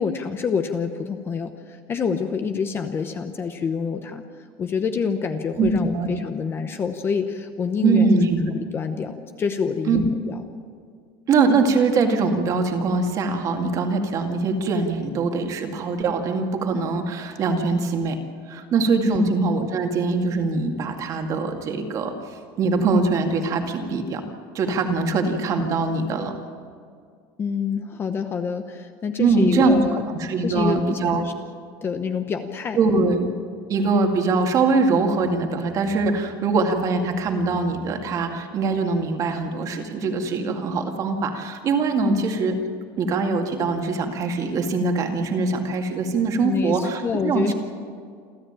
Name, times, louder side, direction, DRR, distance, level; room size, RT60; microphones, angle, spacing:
voice 1, 0.0-4.2 4.6-8.1 8.5-10.5 19.1-19.3 27.4-30.1 30.4-31.3 31.8-33.0 42.0-42.2 46.4-47.5, left 6 dB, 20° left, 7 dB, 0.9 m, -27 dB
voice 2, 5.6-6.1 7.8-8.4 9.9-10.0 11.3-18.2 18.5-22.1 22.6-24.2 24.5-26.3 29.2-29.8 30.2-31.2 32.8-33.3 33.7-42.6 43.0-47.5, right 4 dB, 30° right, 4 dB, 2.2 m, -22 dB
28.5 x 13.0 x 8.9 m, 2.2 s
cardioid pair, 175°, 11 cm